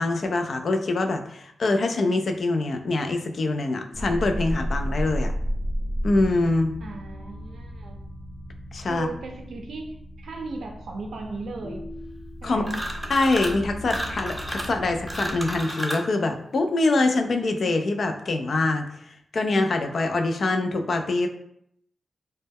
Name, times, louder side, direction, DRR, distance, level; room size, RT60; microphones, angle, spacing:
voice 1, 0.0-5.3 6.0-6.7 8.7-9.1 12.4-12.6 13.1-18.9 19.3-21.3, left 2 dB, 65° left, 5 dB, 0.3 m, -24 dB
sound 1, 3.9-15.6, equal, 85° left, 0.7 m, -34 dB
voice 2, 6.8-8.0 8.9-11.9 12.4-12.8, right 3 dB, 80° right, 2 dB, 0.4 m, -37 dB
sound 2, 12.6-13.6 13.9-16.1, equal, 5° right, 0.5 m, -32 dB
2.1 x 2.1 x 3.4 m, 0.73 s
cardioid pair, 60°, 0 cm